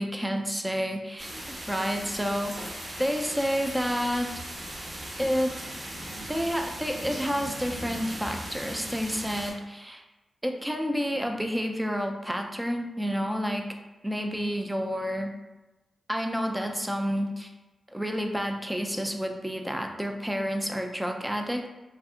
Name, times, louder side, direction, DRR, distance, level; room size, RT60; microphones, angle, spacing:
voice 1, 0.0-2.6 3.0-4.3 5.2-5.6 6.3-10.0 10.4-13.7 14.0-15.3 16.1-17.5 17.9-21.7, equal, 10° right, 3 dB, 0.4 m, -29 dB
sound 1, 1.2-9.5, right 1 dB, 45° right, 0.9 m, -38 dB
2.7 x 2.5 x 2.3 m, 1.1 s
supercardioid pair, 40°, 0 cm